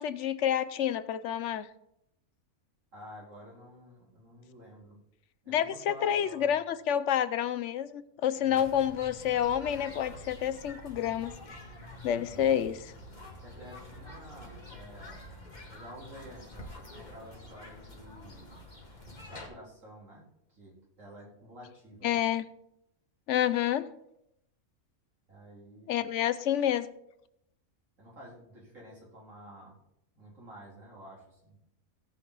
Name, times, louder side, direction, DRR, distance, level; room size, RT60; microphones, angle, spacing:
voice 1, 0.0-1.7 5.5-11.6 12.0-12.9 22.0-22.4 23.3-23.9 25.9-26.9, left 10 dB, 75° left, 14 dB, 0.9 m, -29 dB
voice 2, 2.9-5.0 5.4-6.5 8.4-8.7 12.2-12.6 13.4-15.3 15.7-18.5 19.2-20.2 20.5-22.2 25.3-26.0 28.0-29.8 30.1-31.6, equal, 90° right, -4 dB, 3.8 m, -50 dB
sound 1, 8.5-19.5, left 1 dB, 35° left, 2.0 m, -47 dB
17.0 x 5.8 x 4.0 m, 0.78 s
omnidirectional pair, 1.3 m